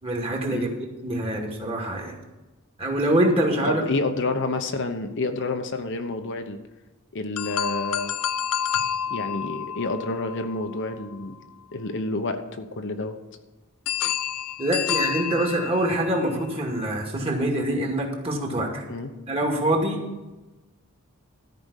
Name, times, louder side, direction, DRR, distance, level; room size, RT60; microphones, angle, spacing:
voice 1, 0.0-2.2 2.8-3.8 14.6-18.8 19.3-20.0, right 1 dB, 25° right, 0 dB, 2.2 m, -25 dB
voice 2, 3.7-6.6 7.1-8.1 9.1-11.4 11.7-13.2 18.9-19.1, left 2 dB, 60° left, 7 dB, 1.0 m, -29 dB
sound 1, 7.4-11.4 13.9-16.2, left 9 dB, 85° left, 0.5 m, -29 dB
13.5 x 5.3 x 8.2 m, 1.1 s
head